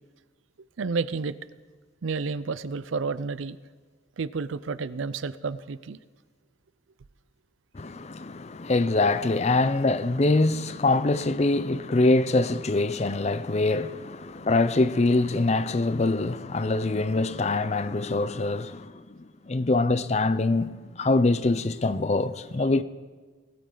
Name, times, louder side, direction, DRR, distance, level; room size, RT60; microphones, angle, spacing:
voice 1, 0.8-1.3 2.0-3.6 4.2-6.0, right 4 dB, 85° right, 0.5 m, -30 dB
voice 2, 7.7-22.8, left 2 dB, 35° left, 0.5 m, -24 dB
19.5 x 13.0 x 3.9 m
head